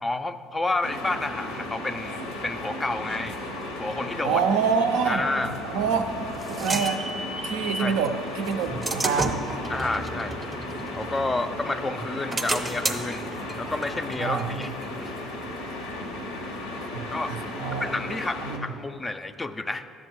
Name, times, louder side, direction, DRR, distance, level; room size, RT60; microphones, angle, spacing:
voice 1, 0.0-3.4 3.8-4.4 5.0-5.6 7.8-8.0 9.7-10.4 11.0-14.7 15.0-15.1 17.1-17.3 17.7-19.9, left 2 dB, 20° left, 10 dB, 0.4 m, -30 dB
sound 1, 0.8-18.6, left 1 dB, 85° left, 0.8 m, -35 dB
voice 2, 4.2-5.2 5.6-6.1 6.5-7.0 7.4-9.4 14.2-14.7 17.3-17.9 18.5-18.7, right 6 dB, 75° right, 7 dB, 0.4 m, -26 dB
sound 2, 5.7-7.9 8.5-11.6 12.0-15.4, right 2 dB, 20° right, 0.7 m, -33 dB
11.0 x 7.3 x 3.0 m, 2.6 s
hypercardioid pair, 60°, 0 cm